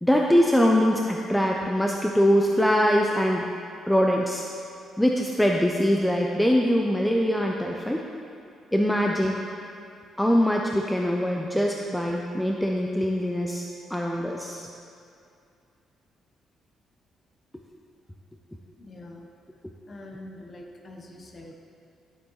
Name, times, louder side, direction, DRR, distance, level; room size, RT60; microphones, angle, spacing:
voice 1, 0.0-3.5 3.9-4.4 5.0-8.0 8.7-9.4 10.2-13.6 13.9-14.7, equal, 5° left, 0 dB, 0.4 m, -23 dB
voice 2, 18.8-19.2 19.9-21.5, left 1 dB, 30° left, 2 dB, 0.8 m, -44 dB
11.0 x 8.2 x 3.1 m, 2.5 s
cardioid pair, 170°, 0 cm